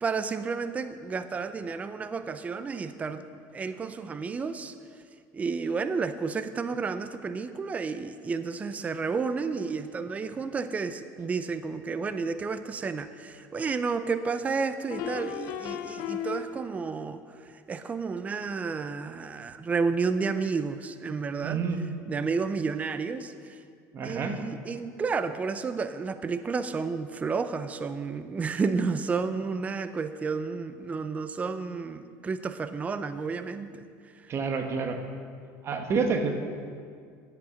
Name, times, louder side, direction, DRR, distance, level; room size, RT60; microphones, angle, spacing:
voice 1, 0.0-3.2 3.5-4.7 5.3-17.2 17.7-21.6 22.1-23.3 24.0-33.8, right 4 dB, 20° right, 11 dB, 0.5 m, -31 dB
sound 1, 13.6-13.7 14.9-16.9, left 8 dB, 65° left, 0.8 m, -35 dB
voice 2, 21.4-21.8 23.9-24.4 34.3-35.0 35.6-36.3, right 5 dB, 35° right, 5 dB, 1.2 m, -28 dB
10.5 x 8.4 x 6.2 m, 2.2 s
cardioid pair, 125°, 7 cm